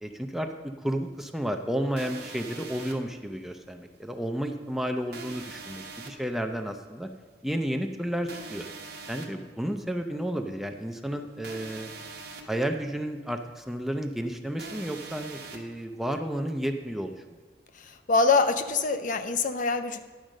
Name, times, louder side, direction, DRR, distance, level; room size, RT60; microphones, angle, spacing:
voice 1, 0.0-7.1 7.4-8.7 9.1-11.9 12.5-17.2, equal, ahead, 5 dB, 0.5 m, -32 dB
sound 1, 2.0-2.9 5.1-6.1 8.3-9.3 11.4-12.4 14.6-15.6, right 3 dB, 65° right, 1.1 m, -42 dB
voice 2, 17.8-20.0, left 4 dB, 45° left, 9 dB, 0.5 m, -24 dB
10.5 x 5.0 x 6.4 m, 1.3 s
head